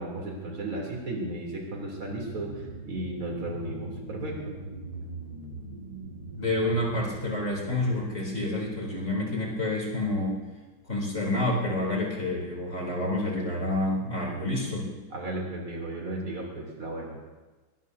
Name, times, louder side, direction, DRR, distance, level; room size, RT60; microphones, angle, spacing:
voice 1, 0.0-4.5 15.1-17.2, right 2 dB, 85° right, -2 dB, 4.0 m, -35 dB
sound 1, 1.2-10.1 10.5-10.6, right 1 dB, 50° right, 2.6 m, -42 dB
voice 2, 6.4-10.4 10.8-14.9, left 1 dB, 35° left, -3 dB, 3.8 m, -28 dB
22.0 x 19.0 x 2.8 m, 1.2 s
omnidirectional pair, 2.2 m